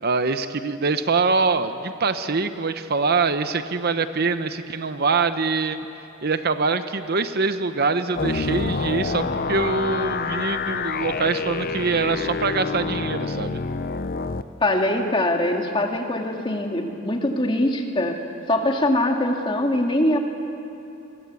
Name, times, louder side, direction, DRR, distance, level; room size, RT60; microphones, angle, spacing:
voice 1, 0.0-5.8 6.2-13.6, right 4 dB, 50° right, 10 dB, 0.8 m, -24 dB
sound 1, 8.1-14.4, left 4 dB, 45° left, 0.7 m, -27 dB
voice 2, 14.6-18.2 18.5-20.2, left 1 dB, 25° left, 2 dB, 2.2 m, -22 dB
29.0 x 22.0 x 8.4 m, 2.9 s
head